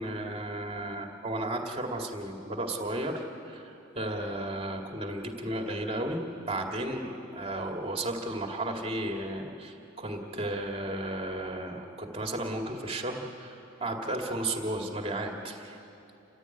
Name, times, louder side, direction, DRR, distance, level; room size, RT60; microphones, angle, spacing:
voice 1, 0.0-15.8, right 1 dB, 30° right, 2 dB, 2.3 m, -34 dB
29.0 x 15.0 x 9.8 m, 2.8 s
head